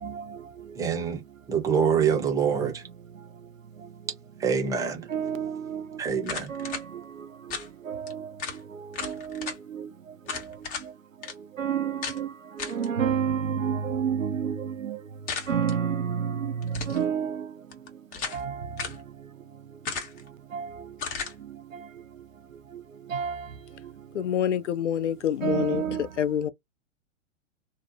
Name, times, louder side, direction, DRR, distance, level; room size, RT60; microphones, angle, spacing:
voice 1, 0.0-0.4 2.5-2.7 5.1-6.0 6.5-6.8 7.9-8.3 9.0-9.9 11.6-12.3 12.6-15.0 15.5-17.5 18.3-18.8 20.5-20.7 23.1-23.5 25.4-26.1, right 7 dB, 90° right, 0.5 m, -29 dB
voice 2, 0.8-1.2 1.5-2.8 4.4-5.1 6.0-6.5, right 6 dB, 10° right, 0.5 m, -25 dB
sound 1, 6.2-6.8 7.5-7.7 8.1-8.2 8.4-8.6 8.9-9.6 10.3-10.9 11.2-11.3 12.0-12.2 12.6-12.9 15.3-15.8 16.6-17.0 17.7-18.4 18.8-19.0 19.8-20.3 21.0-21.3, left 5 dB, 20° left, 0.8 m, -34 dB
voice 3, 24.1-25.8 26.2-26.5, left 9 dB, 65° left, 0.5 m, -26 dB
2.6 x 2.0 x 2.6 m
figure-of-eight pair, 105°, 38 cm